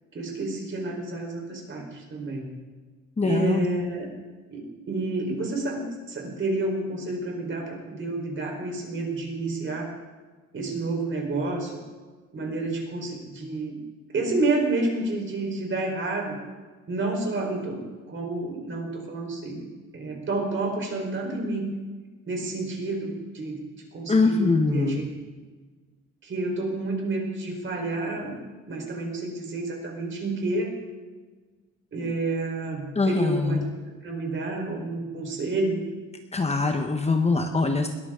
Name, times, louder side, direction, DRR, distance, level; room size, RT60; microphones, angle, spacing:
voice 1, 0.1-2.6 3.2-4.1 4.5-9.9 10.5-11.8 12.3-13.8 14.1-16.4 16.9-19.7 19.9-21.7 22.3-25.0 26.2-28.4 28.7-30.7 31.9-35.8, right 2 dB, 40° right, 1 dB, 4.3 m, -29 dB
voice 2, 3.2-3.6 24.1-25.0 32.9-33.6 36.3-37.9, left 3 dB, 20° left, 5 dB, 1.1 m, -23 dB
21.0 x 14.0 x 3.8 m, 1.3 s
cardioid pair, 120°, 31 cm